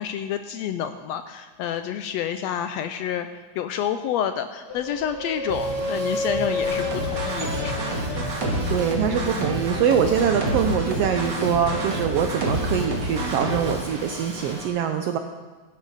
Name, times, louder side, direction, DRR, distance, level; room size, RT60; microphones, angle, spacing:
voice 1, 0.0-3.3 3.5-7.8, left 9 dB, 80° left, 9 dB, 1.6 m, -29 dB
sound 1, 4.7-11.1, left 2 dB, 30° left, 3.0 m, -32 dB
Drum kit / Drum, 5.5-14.7, right 1 dB, 20° right, 2.4 m, -36 dB
sound 2, 6.6-13.7, right 1 dB, 40° right, 2.0 m, -28 dB
voice 2, 8.7-15.2, right 7 dB, 80° right, 6 dB, 1.4 m, -23 dB
16.0 x 10.5 x 4.1 m, 1.3 s
omnidirectional pair, 3.4 m